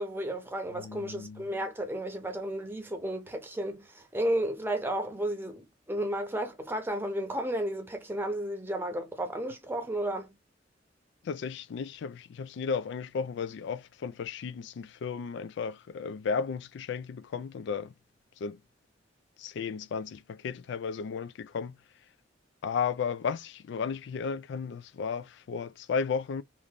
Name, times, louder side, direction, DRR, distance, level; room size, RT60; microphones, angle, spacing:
voice 1, 0.0-10.3, right 1 dB, 10° right, 0.7 m, -33 dB
voice 2, 0.7-1.5 11.2-17.9 18.4-18.6 19.4-21.8 22.6-26.4, left 6 dB, 65° left, 0.3 m, -34 dB
2.9 x 2.5 x 3.5 m
head